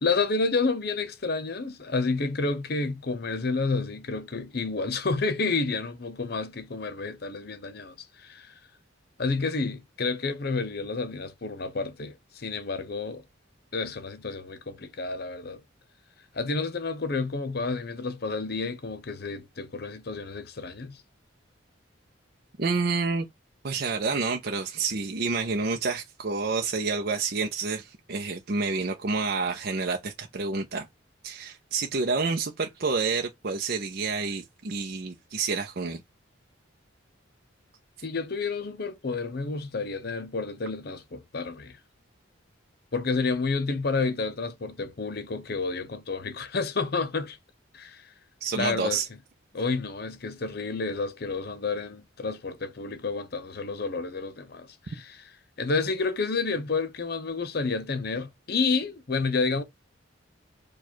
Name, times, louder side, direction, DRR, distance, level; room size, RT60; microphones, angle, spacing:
voice 1, 0.0-8.5 9.2-13.2 13.7-15.6 16.3-21.0 38.0-41.8 42.9-47.4 47.7-48.1 48.5-49.0 49.5-55.3 55.6-59.6, left 4 dB, 50° left, 0.7 m, -30 dB
voice 2, 22.6-23.3 23.6-30.9 31.2-36.0 48.4-49.1, right 4 dB, 50° right, 0.6 m, -29 dB
4.7 x 2.3 x 4.4 m
head